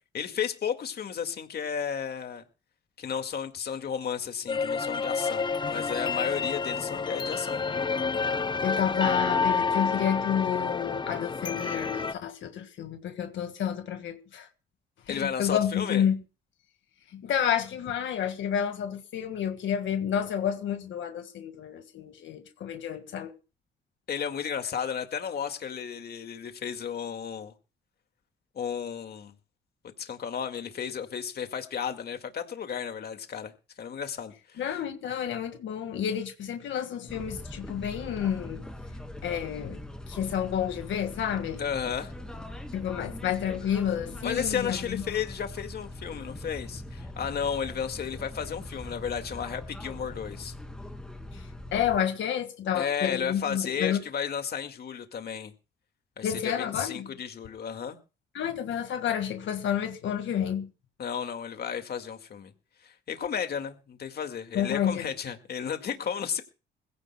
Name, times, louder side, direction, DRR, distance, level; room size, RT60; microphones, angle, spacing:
voice 1, 0.1-2.4 3.0-7.6 15.1-16.0 24.1-27.5 28.6-29.3 30.0-33.5 33.8-34.8 41.6-42.1 44.2-50.5 52.7-55.5 56.2-58.0 61.0-62.5 62.8-66.4, left 7 dB, 55° left, 2.0 m, -33 dB
sound 1, 4.5-12.1, left 5 dB, 25° left, 0.7 m, -29 dB
voice 2, 8.6-14.5 15.1-16.2 17.1-23.3 34.6-38.7 39.2-39.8 40.1-41.6 42.7-45.0 51.3-51.4 51.7-54.0 56.2-57.1 58.3-60.7 64.5-65.1, left 9 dB, 70° left, 1.8 m, -30 dB
sound 2, 37.1-52.0, left 1 dB, 5° left, 2.4 m, -41 dB
22.0 x 16.0 x 2.3 m
cardioid pair, 90°, 20 cm